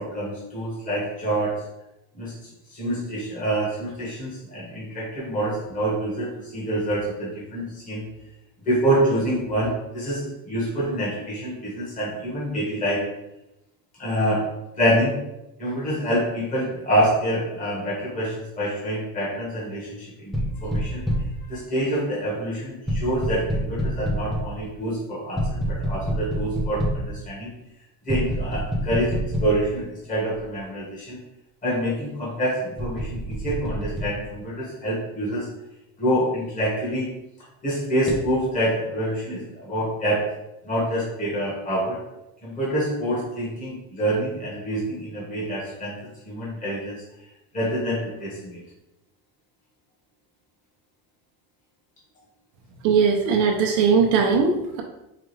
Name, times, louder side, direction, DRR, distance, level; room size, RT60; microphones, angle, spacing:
voice 1, 0.0-1.6 2.1-2.3 2.7-8.0 8.6-13.0 14.0-14.5 14.8-15.1 15.6-21.0 21.5-27.5 28.1-31.2 31.6-35.5 36.0-37.1 37.6-40.3 40.6-42.0 42.4-46.0 46.2-47.0 47.5-48.6, right 1 dB, 20° left, -7 dB, 1.4 m, -26 dB
sound 1, 20.3-21.4 22.9-24.6 25.4-27.1 28.1-29.7 30.3-30.4 32.8-34.1 38.1-38.3, equal, ahead, 0.5 m, -27 dB
voice 2, 52.8-54.8, right 5 dB, 75° right, 1 dB, 0.7 m, -19 dB
4.8 x 2.4 x 3.2 m, 0.92 s
cardioid pair, 145°, 40 cm